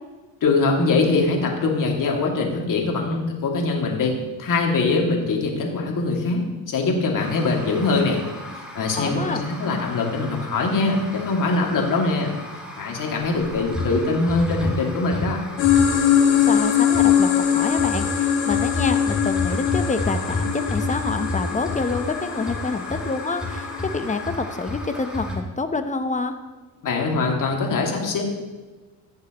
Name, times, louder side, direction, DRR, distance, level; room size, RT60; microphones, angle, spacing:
voice 1, 0.4-4.1 4.4-8.2 8.7-12.3 12.7-15.4 26.8-28.2, left 3 dB, 50° left, 0 dB, 2.5 m, -22 dB
sound 1, 7.2-25.4, left 1 dB, ahead, 2.9 m, -32 dB
voice 2, 9.0-9.4 16.4-26.3, left 3 dB, 20° left, 8 dB, 0.9 m, -27 dB
sound 2, 15.6-24.3, left 9 dB, 85° left, 2.0 m, -22 dB
15.5 x 6.6 x 3.1 m, 1.3 s
supercardioid pair, 75°, 39 cm